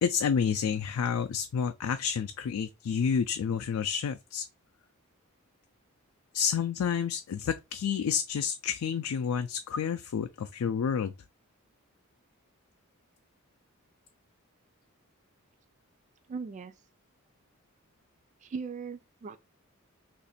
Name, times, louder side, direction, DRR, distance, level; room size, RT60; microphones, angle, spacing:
voice 1, 0.0-4.4 6.3-11.1, left 7 dB, 85° left, 0.4 m, -29 dB
voice 2, 16.3-16.7 18.4-19.4, right 5 dB, 35° right, 0.3 m, -38 dB
2.9 x 2.6 x 4.0 m
head